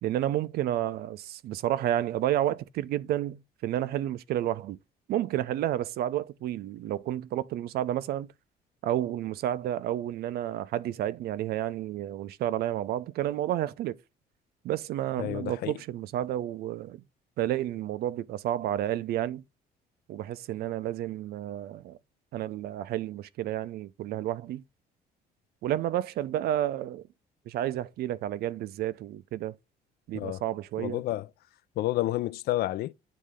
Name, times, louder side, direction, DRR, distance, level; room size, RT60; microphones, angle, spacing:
voice 1, 0.0-4.8 5.1-8.3 8.8-14.0 14.6-17.0 17.4-19.4 20.1-22.0 22.3-24.6 25.6-27.1 27.5-29.6 30.1-31.0, right 12 dB, 65° right, 0.5 m, -31 dB
voice 2, 15.2-15.7 30.1-30.4 30.8-31.3 31.8-32.9, left 16 dB, 65° left, 0.4 m, -30 dB
8.4 x 3.2 x 3.6 m
cardioid pair, 110°, 17 cm